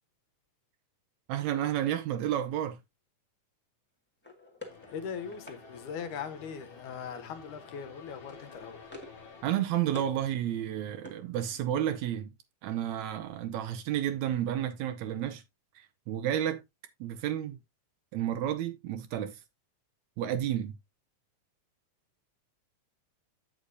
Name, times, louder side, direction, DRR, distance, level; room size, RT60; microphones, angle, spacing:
voice 1, 1.3-2.8 9.4-12.3 12.6-15.4 15.8-16.6 17.0-17.6 18.1-19.4 20.2-20.7, right 11 dB, 75° right, 1.9 m, -31 dB
sound 1, 4.2-5.6 6.9-7.3 7.6-7.9 8.2-9.3 9.5-10.2 10.5-11.8, left 2 dB, 10° left, 0.7 m, -50 dB
sound 2, 4.6-9.5, left 5 dB, 40° left, 2.7 m, -51 dB
voice 2, 4.9-8.9, left 7 dB, 75° left, 2.5 m, -40 dB
8.3 x 8.0 x 2.7 m
omnidirectional pair, 3.6 m